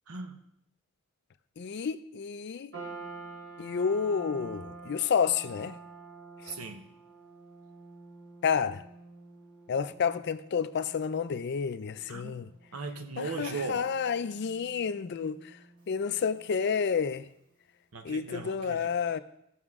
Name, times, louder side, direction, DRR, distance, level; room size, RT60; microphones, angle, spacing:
voice 1, 0.1-0.4 6.4-6.9 12.1-12.4 12.7-13.9 17.9-18.9, right 4 dB, 80° right, 0.9 m, -38 dB
voice 2, 1.6-2.7 3.6-5.8 6.4-6.5 8.4-8.8 9.7-12.5 13.2-15.5 15.9-17.3 18.0-19.2, left 6 dB, 50° left, 0.4 m, -30 dB
sound 1, 2.7-17.1, right 3 dB, 55° right, 2.9 m, -49 dB
16.5 x 6.2 x 3.6 m
head